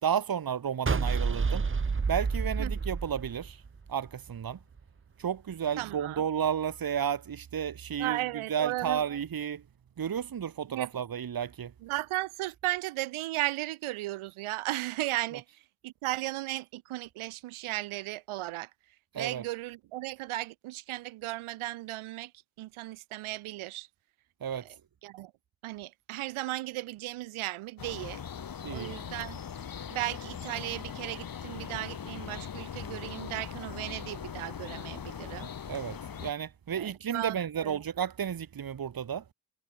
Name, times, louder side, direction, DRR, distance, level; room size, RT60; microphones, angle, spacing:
voice 1, 0.0-1.7 2.1-3.6 3.9-4.6 5.2-8.2 8.5-9.6 10.0-11.7 19.1-19.4 24.4-24.7 28.6-29.0 35.7-39.2, right 8 dB, 45° right, 3.6 m, -32 dB
sound 1, 0.9-4.1, right 5 dB, 25° right, 2.5 m, -29 dB
voice 2, 5.8-6.2 8.0-9.0 10.7-10.9 11.8-15.4 15.8-18.7 19.1-22.3 22.6-23.9 24.5-24.7 25.0-25.3 25.6-28.2 28.7-29.4 29.9-35.5 36.7-37.8, right 17 dB, 85° right, 6.5 m, -35 dB
sound 2, 27.8-36.3, left 7 dB, 45° left, 5.4 m, -40 dB
cardioid pair, 90°, 48 cm